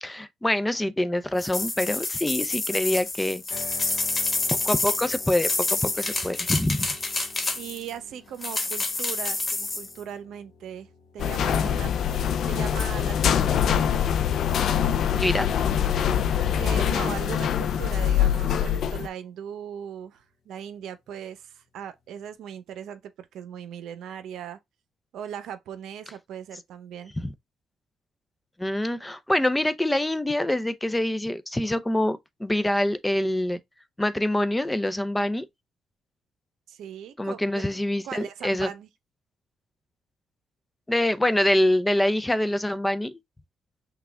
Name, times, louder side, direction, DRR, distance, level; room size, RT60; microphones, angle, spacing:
voice 1, 0.0-3.4 4.6-5.5 5.8-6.9 15.2-15.5 27.2-27.3 28.6-33.6 34.0-35.5 37.2-38.7 40.9-43.1, left 1 dB, 10° left, 0.6 m, -25 dB
sound 1, 1.4-7.9 8.4-9.9, left 3 dB, 30° left, 1.2 m, -28 dB
sound 2, 3.5-17.6, left 5 dB, 90° left, 1.4 m, -51 dB
voice 2, 7.5-11.9 12.5-14.1 16.5-24.6 25.1-27.1 36.7-37.6 38.0-38.9, right 9 dB, 80° right, 0.7 m, -39 dB
sound 3, 11.2-19.1, left 9 dB, 70° left, 0.5 m, -24 dB
5.9 x 2.4 x 3.3 m
cardioid pair, 90°, 0 cm